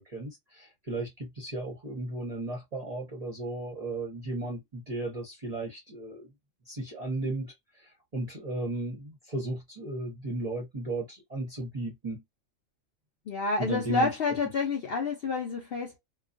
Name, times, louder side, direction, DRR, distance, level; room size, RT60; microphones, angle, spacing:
voice 1, 0.0-6.3 6.7-12.2 13.6-14.2, right 2 dB, 35° right, 0.7 m, -35 dB
voice 2, 13.3-16.0, left 4 dB, 65° left, 0.6 m, -29 dB
2.3 x 2.2 x 2.5 m
omnidirectional pair, 1.4 m